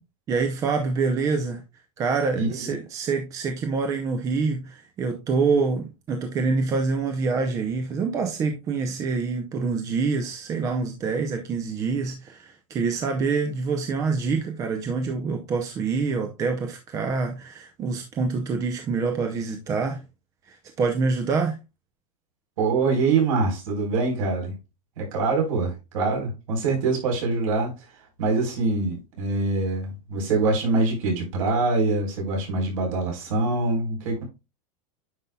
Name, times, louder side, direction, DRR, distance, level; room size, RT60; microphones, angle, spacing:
voice 1, 0.3-1.6 2.0-20.0 20.5-21.6, right 4 dB, 15° right, 0.6 m, -26 dB
voice 2, 2.3-2.7 22.6-24.5 25.0-27.7 28.2-34.2, right 3 dB, 60° right, 4.2 m, -24 dB
9.6 x 5.4 x 2.3 m
supercardioid pair, 175°, 19 cm